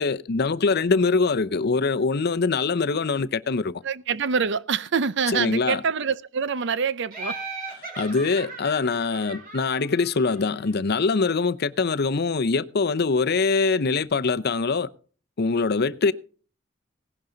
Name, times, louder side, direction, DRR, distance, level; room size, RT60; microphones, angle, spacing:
voice 1, 0.0-3.8 5.3-5.8 8.0-14.9 15.4-16.1, left 4 dB, 55° left, 0.6 m, -23 dB
voice 2, 3.8-7.4, right 6 dB, 65° right, 0.6 m, -25 dB
Laughter, 7.1-10.7, right 3 dB, 45° right, 4.8 m, -38 dB
17.5 x 10.5 x 3.9 m
head